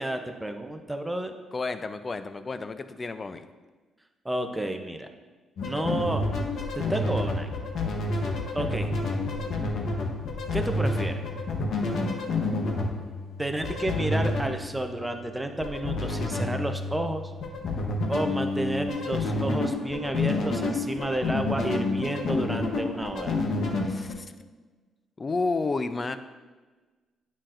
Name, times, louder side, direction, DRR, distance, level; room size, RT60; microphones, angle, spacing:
voice 1, 0.0-1.3 4.2-5.1 5.6-6.2 6.7-7.5 8.2-8.3 8.5-8.9 10.5-11.2 13.4-17.3 18.1-23.4, right 1 dB, 10° right, 6 dB, 0.6 m, -31 dB
voice 2, 1.5-3.5 23.8-24.3 25.2-26.2, left 3 dB, 30° left, 11 dB, 0.4 m, -31 dB
Pattern Suboctave, 5.6-24.1, left 2 dB, 65° left, 0.9 m, -29 dB
8.9 x 5.7 x 2.5 m, 1.3 s
cardioid pair, 90°, 0 cm